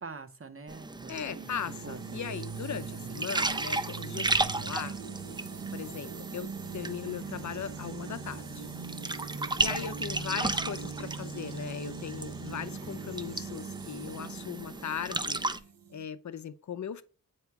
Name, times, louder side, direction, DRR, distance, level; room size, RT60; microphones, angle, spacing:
voice 1, 0.0-2.2 2.8-3.3 9.3-9.7, right 4 dB, 40° right, 0.7 m, -46 dB
sound 1, 0.7-15.6, right 2 dB, 15° right, 0.3 m, -35 dB
voice 2, 1.1-5.0 5.7-8.7 9.6-15.4 15.9-17.0, left 8 dB, 55° left, 0.5 m, -38 dB
sound 2, 1.3-16.0, right 6 dB, 70° right, 0.7 m, -41 dB
8.0 x 3.0 x 4.6 m
wide cardioid pair, 115°, 35 cm